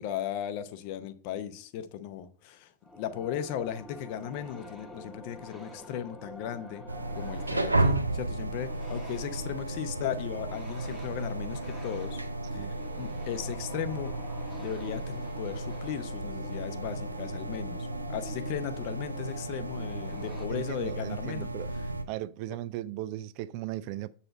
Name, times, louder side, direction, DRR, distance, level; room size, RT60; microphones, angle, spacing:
voice 1, 0.0-6.8 7.1-12.2 12.5-14.1 14.6-21.5 21.7-21.8, left 10 dB, 45° left, 0.8 m, -37 dB
sound 1, 2.8-20.5, left 1 dB, 5° left, 1.0 m, -47 dB
sound 2, 6.9-22.0, right 2 dB, 85° right, 0.6 m, -34 dB
voice 2, 20.5-21.7 22.1-24.1, right 14 dB, 45° right, 0.3 m, -37 dB
7.8 x 4.2 x 4.9 m
figure-of-eight pair, 90°, 0 cm